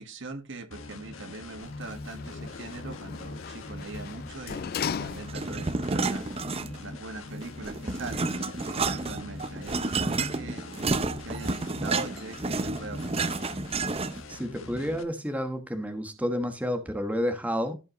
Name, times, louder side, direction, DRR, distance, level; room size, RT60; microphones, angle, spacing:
voice 1, 0.0-6.3 6.8-10.7 11.2-13.4, right 3 dB, 60° right, 1.6 m, -41 dB
sound 1, 0.7-15.0, left 2 dB, 70° left, 1.7 m, -42 dB
Sliding door, 1.6-5.7 6.2-6.3, left 7 dB, 45° left, 0.4 m, -37 dB
sound 2, 5.3-7.0 7.3-14.3, right 3 dB, 30° right, 0.6 m, -30 dB
voice 2, 14.3-17.7, equal, 5° right, 1.2 m, -30 dB
16.0 x 5.5 x 3.0 m
head